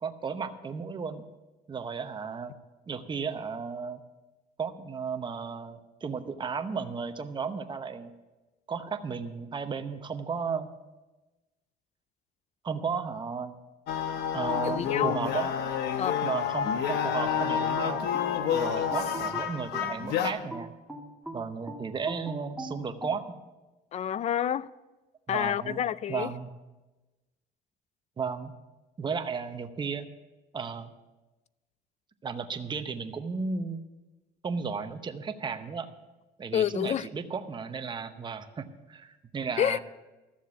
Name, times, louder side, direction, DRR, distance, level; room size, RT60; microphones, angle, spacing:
voice 1, 0.0-1.2 1.7-4.0 4.6-8.1 8.7-10.7 12.6-13.6 14.3-15.5 16.2-18.0 18.5-20.7 21.3-23.4 25.3-25.8 26.1-26.5 28.2-28.5 29.0-30.1 30.5-30.9 32.2-33.8 34.4-35.9 36.4-39.8, right 5 dB, 25° right, 0.9 m, -34 dB
sound 1, 13.9-20.3, left 8 dB, 75° left, 1.0 m, -29 dB
voice 2, 14.5-15.2 16.0-16.2 23.9-24.7 25.3-26.3 36.5-37.1 39.6-39.8, left 10 dB, 40° left, 0.4 m, -28 dB
sound 2, 17.4-20.0 20.5-23.2, right 1 dB, 5° right, 2.0 m, -41 dB
13.0 x 7.3 x 7.1 m
cardioid pair, 110°, 17 cm